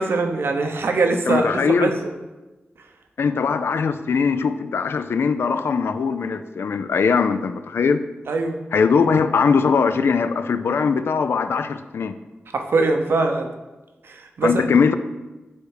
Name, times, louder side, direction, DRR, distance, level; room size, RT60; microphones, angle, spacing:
voice 1, 0.0-2.1 8.3-8.6 12.5-13.5 14.0-14.7, right 3 dB, 80° right, 5 dB, 0.8 m, -22 dB
voice 2, 1.3-1.9 3.2-8.0 8.7-12.2 14.4-15.0, left 5 dB, 85° left, 10 dB, 0.4 m, -20 dB
9.4 x 3.3 x 4.8 m, 1.1 s
cardioid pair, 65°, 4 cm